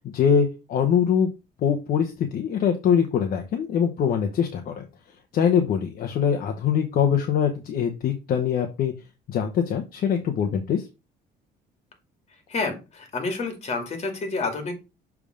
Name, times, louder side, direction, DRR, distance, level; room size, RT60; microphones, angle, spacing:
voice 1, 0.1-1.3 1.6-4.9 5.3-8.9 9.3-10.8, left 7 dB, 60° left, 5 dB, 1.0 m, -23 dB
voice 2, 12.5-14.7, left 3 dB, 40° left, 5 dB, 2.4 m, -29 dB
6.8 x 3.6 x 5.0 m, 0.28 s
cardioid pair, 110°, 17 cm